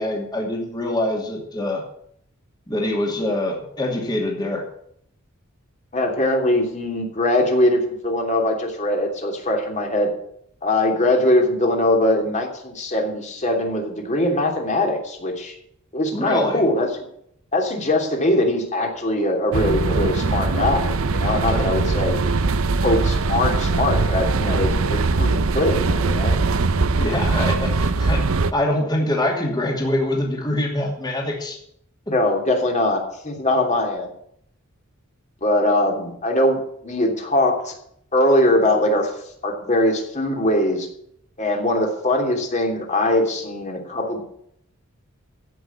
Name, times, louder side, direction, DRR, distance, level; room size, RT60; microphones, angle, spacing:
voice 1, 0.0-1.8 2.7-4.6 16.1-16.6 21.5-21.6 27.0-28.2 28.5-31.6 32.1-32.2, left 1 dB, 20° left, 0 dB, 2.7 m, -24 dB
voice 2, 5.9-10.1 10.6-15.5 15.9-17.0 17.5-22.2 22.8-26.4 32.1-34.1 35.4-37.7 38.1-39.1 39.4-40.9 41.4-44.2, left 1 dB, 35° left, 2 dB, 3.1 m, -21 dB
sound 1, 19.5-28.5, right 3 dB, 70° right, 0.7 m, -21 dB
15.5 x 6.5 x 8.6 m, 0.69 s
head